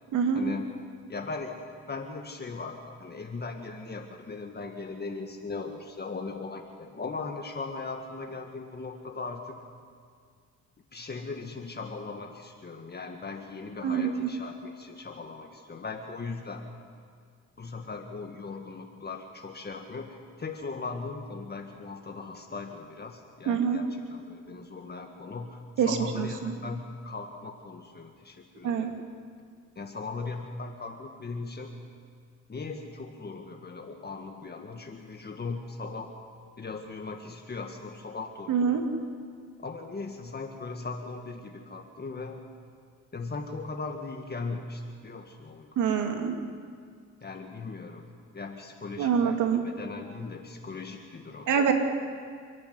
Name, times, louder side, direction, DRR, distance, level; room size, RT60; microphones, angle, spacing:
voice 1, 0.3-0.7 1.1-9.6 10.9-16.7 17.6-29.0 29.8-31.7 32.5-36.1 36.6-38.8 39.6-42.4 43.1-45.8 47.2-51.5, left 3 dB, 35° left, 3 dB, 1.8 m, -38 dB
voice 2, 13.8-14.3 23.5-23.8 25.8-26.6 28.6-28.9 38.5-38.8 45.8-46.3 49.0-49.6 51.5-51.7, right 7 dB, 80° right, 4 dB, 2.6 m, -25 dB
29.5 x 11.5 x 9.7 m, 2.1 s
cardioid pair, 90°, 30 cm